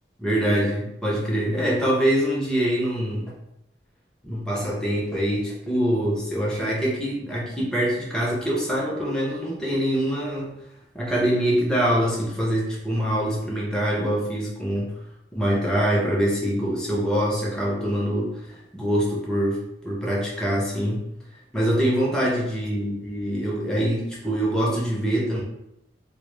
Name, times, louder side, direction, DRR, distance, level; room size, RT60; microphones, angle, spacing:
voice 1, 0.2-3.3 4.2-10.5 10.9-15.0 15.3-21.0 21.5-25.4, equal, 5° left, -5 dB, 0.4 m, -24 dB
2.1 x 2.0 x 3.1 m, 0.82 s
head